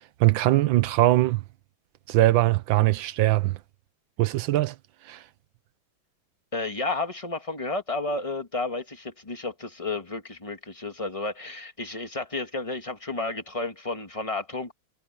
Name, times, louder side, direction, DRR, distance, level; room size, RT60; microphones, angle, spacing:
voice 1, 0.2-1.4 2.1-3.6 4.2-4.8 5.0-5.2, right 16 dB, 75° right, 1.4 m, -21 dB
voice 2, 6.5-14.7, left 3 dB, 15° left, 1.8 m, -32 dB
omnidirectional pair, 2.2 m